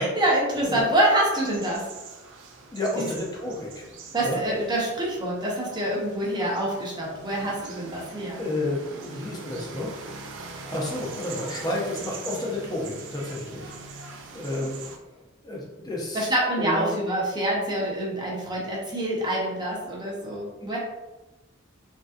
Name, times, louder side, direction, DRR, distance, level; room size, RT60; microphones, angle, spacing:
voice 1, 0.0-1.8 3.0-3.1 4.1-8.4 16.1-20.8, right 1 dB, 20° right, -4 dB, 0.8 m, -26 dB
sound 1, 0.7-15.0, right 3 dB, 65° right, 0.4 m, -42 dB
voice 2, 2.7-3.9 4.2-4.4 8.4-10.1 10.7-14.8 15.4-17.0, left 1 dB, 20° left, -3 dB, 0.6 m, -31 dB
3.2 x 2.7 x 2.4 m, 1.0 s
head